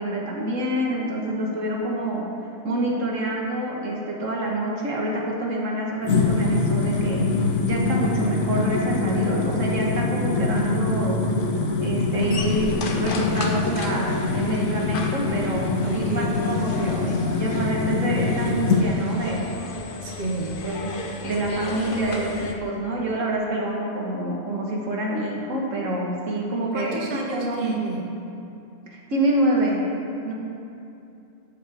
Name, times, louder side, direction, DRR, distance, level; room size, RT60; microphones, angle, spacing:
voice 1, 0.0-2.3 2.6-7.4 7.6-11.3 11.8-19.5 20.6-21.0 21.2-27.0 27.3-27.8 28.9-29.9 30.2-30.3, right 1 dB, 65° right, -2 dB, 1.8 m, -27 dB
sound 1, 6.0-18.9, left 3 dB, 70° left, 1.4 m, -24 dB
sound 2, 12.2-22.5, left 3 dB, 45° left, 0.9 m, -35 dB
voice 2, 15.8-16.4 20.0-20.5 26.7-28.0, right 2 dB, 35° right, -1 dB, 1.1 m, -31 dB
13.5 x 8.2 x 3.5 m, 2.7 s
omnidirectional pair, 1.4 m